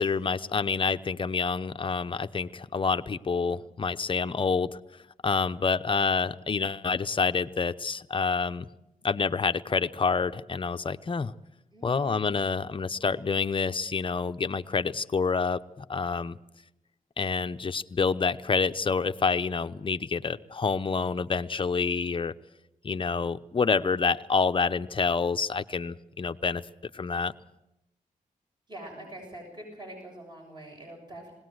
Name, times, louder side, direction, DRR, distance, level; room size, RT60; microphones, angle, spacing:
voice 1, 0.0-4.7 5.2-8.7 9.0-11.3 11.8-16.4 17.2-22.3 22.8-26.6 26.9-27.3, left 5 dB, 35° left, 10 dB, 0.8 m, -27 dB
voice 2, 11.7-12.4 28.7-31.3, right 1 dB, 30° right, 1 dB, 7.1 m, -44 dB
20.5 x 18.0 x 7.9 m, 0.90 s
cardioid pair, 70°, 14 cm